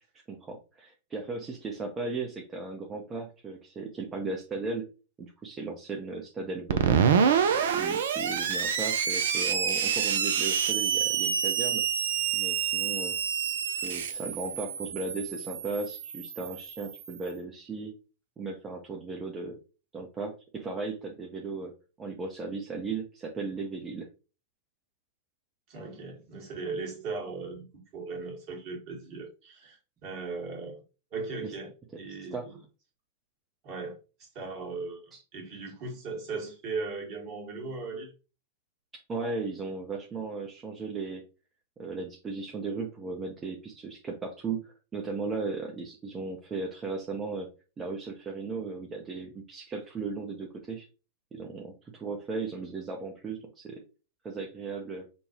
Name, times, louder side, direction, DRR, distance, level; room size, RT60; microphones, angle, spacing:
voice 1, 0.3-4.8 5.2-7.0 7.6-11.8 12.3-13.2 13.7-17.9 18.4-19.6 19.9-21.7 22.0-24.1 31.4-31.5 32.3-32.4 35.1-35.2 39.1-41.2 41.8-47.5 47.8-50.9 51.3-53.8 54.2-55.1, right 4 dB, 25° right, 0.7 m, -36 dB
Screech, 6.7-17.2, right 7 dB, 65° right, 0.5 m, -27 dB
voice 2, 25.7-27.6 27.9-30.8 31.1-31.7 32.0-32.6 33.6-38.1, right 4 dB, 45° right, 1.6 m, -38 dB
5.3 x 2.3 x 2.9 m
figure-of-eight pair, 95°, 0 cm